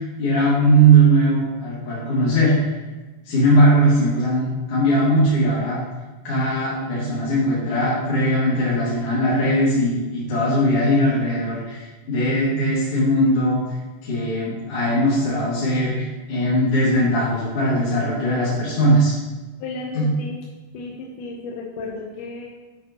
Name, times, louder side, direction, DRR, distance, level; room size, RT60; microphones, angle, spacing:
voice 1, 0.0-2.7 3.2-5.8 6.2-13.8 14.0-19.1 19.9-20.1, right 1 dB, 45° left, -9 dB, 2.8 m, -19 dB
voice 2, 19.6-20.4 20.7-22.5, left 3 dB, 75° left, -1 dB, 2.3 m, -33 dB
9.7 x 8.1 x 2.9 m, 1.2 s
omnidirectional pair, 3.7 m